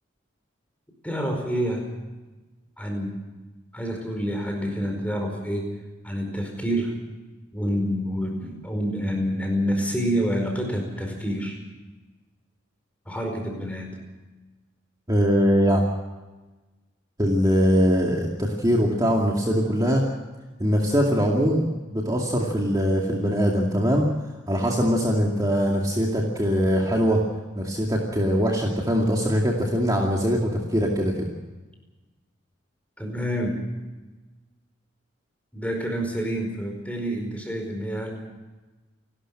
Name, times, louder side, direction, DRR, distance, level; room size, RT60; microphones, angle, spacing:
voice 1, 1.0-1.9 2.8-3.2 3.7-5.7 6.0-7.0 7.5-11.6 13.0-14.0 33.0-33.6 35.5-38.1, equal, 5° left, 2 dB, 5.0 m, -28 dB
voice 2, 15.1-15.8 17.2-20.0 20.6-21.6 21.9-24.1 24.5-27.2 27.6-31.3, equal, 20° right, -1 dB, 2.4 m, -22 dB
29.0 x 12.5 x 7.8 m, 1.2 s
head